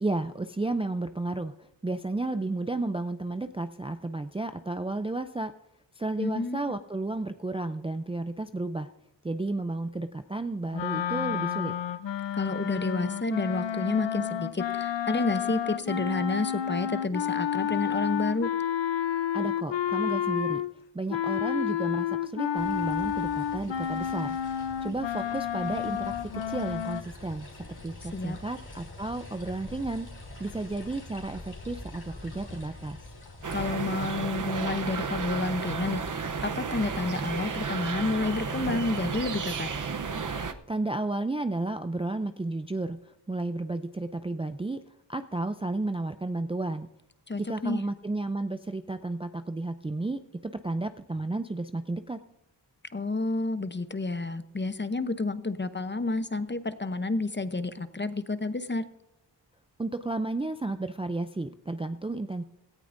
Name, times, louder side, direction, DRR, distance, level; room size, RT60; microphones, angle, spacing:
voice 1, 0.0-5.5 6.0-8.9 9.2-11.7 19.3-20.6 20.9-24.4 24.8-30.1 30.4-33.0 40.7-44.8 45.1-46.9 47.4-52.2 59.8-62.4, right 2 dB, 15° right, 9 dB, 0.4 m, -32 dB
voice 2, 6.2-6.7 12.4-18.5 28.1-28.4 33.5-39.7 47.3-47.8 52.9-58.9, left 3 dB, 25° left, 11 dB, 0.7 m, -30 dB
sound 1, 10.7-20.7 21.1-27.0, left 9 dB, 85° left, 0.7 m, -30 dB
sound 2, 22.6-33.9, left 2 dB, 60° left, 3.3 m, -45 dB
sound 3, 33.4-40.5, right 5 dB, 45° right, 0.8 m, -33 dB
17.5 x 13.5 x 2.6 m, 0.87 s
wide cardioid pair, 70°, 43 cm